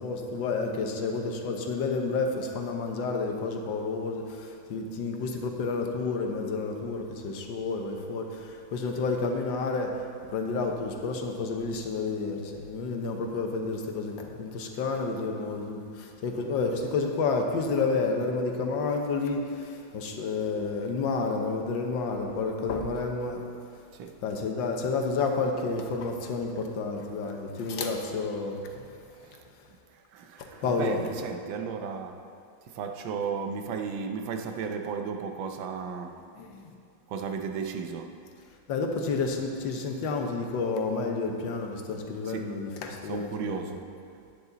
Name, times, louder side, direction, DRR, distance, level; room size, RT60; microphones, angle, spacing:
voice 1, 0.0-10.0 10.3-23.4 24.2-28.9 30.4-31.0 36.4-36.7 38.7-43.7, left 4 dB, 75° left, 1.6 m, -30 dB
voice 2, 23.9-24.2 29.2-29.4 29.9-32.3 32.7-36.3 37.1-38.2 42.2-42.6 43.1-44.0, right 6 dB, 85° right, 1.5 m, -35 dB
9.6 x 9.3 x 4.0 m
omnidirectional pair, 2.0 m